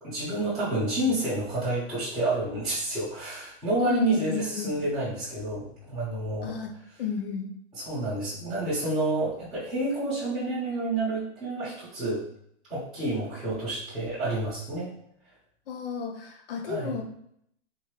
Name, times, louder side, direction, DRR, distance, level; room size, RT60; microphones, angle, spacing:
voice 1, 0.0-6.5 7.8-12.2 12.7-14.9 16.7-17.0, right 2 dB, ahead, -15 dB, 0.9 m, -29 dB
voice 2, 3.8-4.7 6.4-6.7 7.0-7.5 15.7-17.0, left 6 dB, 45° left, 4 dB, 0.7 m, -32 dB
3.6 x 2.7 x 3.1 m, 0.70 s
hypercardioid pair, 165°, 38 cm